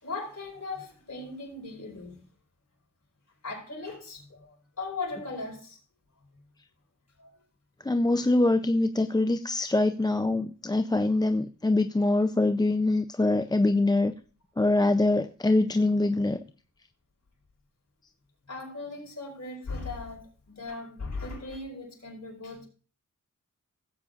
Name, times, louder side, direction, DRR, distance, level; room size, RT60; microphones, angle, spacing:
voice 1, 0.0-2.2 3.4-5.8 7.2-7.4 10.2-10.3 14.8-14.9 18.5-22.7, left 3 dB, 55° left, 4.7 m, -38 dB
voice 2, 7.8-14.1 14.6-16.4, left 2 dB, 15° left, 0.4 m, -24 dB
17.0 x 8.4 x 2.5 m
wide cardioid pair, 95°, 31 cm